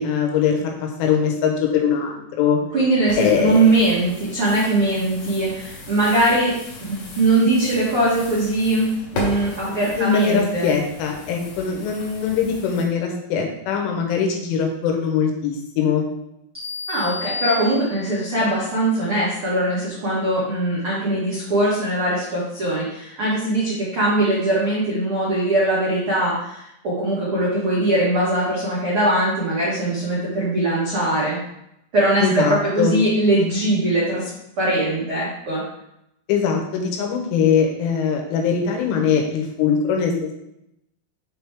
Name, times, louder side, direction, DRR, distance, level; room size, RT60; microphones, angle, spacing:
voice 1, 0.0-2.6 3.2-3.7 9.7-16.1 32.2-33.0 36.3-40.3, left 6 dB, 85° left, 2 dB, 3.5 m, -22 dB
voice 2, 2.7-6.6 6.9-10.7 16.9-31.4 31.9-34.3 34.6-35.6, right 1 dB, 85° right, -8 dB, 1.2 m, -21 dB
sound 1, 3.1-12.9, left 2 dB, 65° left, 2.2 m, -36 dB
sound 2, 16.5-18.4, left 3 dB, 10° right, 0.5 m, -31 dB
7.5 x 4.5 x 3.6 m, 0.81 s
omnidirectional pair, 5.6 m